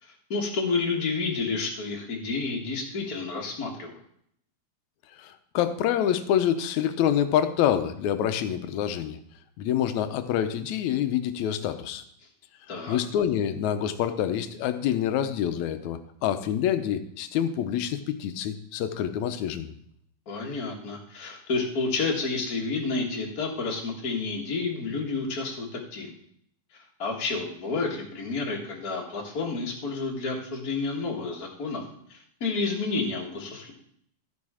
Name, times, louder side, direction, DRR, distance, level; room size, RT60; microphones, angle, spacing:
voice 1, 0.0-4.0 12.7-13.0 20.3-26.1 26.7-31.8 32.1-33.7, left 4 dB, 40° left, -2 dB, 1.3 m, -30 dB
voice 2, 5.2-9.2 9.6-12.0 12.7-19.8, left 10 dB, 75° left, 10 dB, 1.9 m, -27 dB
14.0 x 5.5 x 4.9 m, 0.69 s
omnidirectional pair, 3.7 m